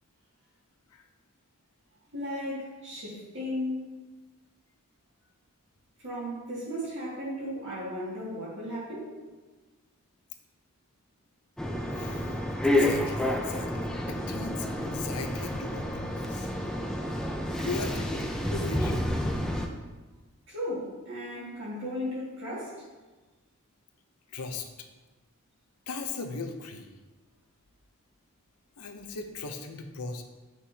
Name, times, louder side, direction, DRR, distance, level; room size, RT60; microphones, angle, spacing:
voice 1, 2.1-3.9 6.0-9.1 17.6-17.8 20.5-22.8, equal, 55° right, -7 dB, 2.0 m, -35 dB
sound 1, 11.6-19.7, left 1 dB, 5° left, 0.4 m, -29 dB
voice 2, 11.9-16.5 17.6-19.1 24.3-24.7 25.9-26.9 28.8-30.2, left 4 dB, 85° left, 5 dB, 0.7 m, -38 dB
8.0 x 6.1 x 2.8 m, 1.3 s
head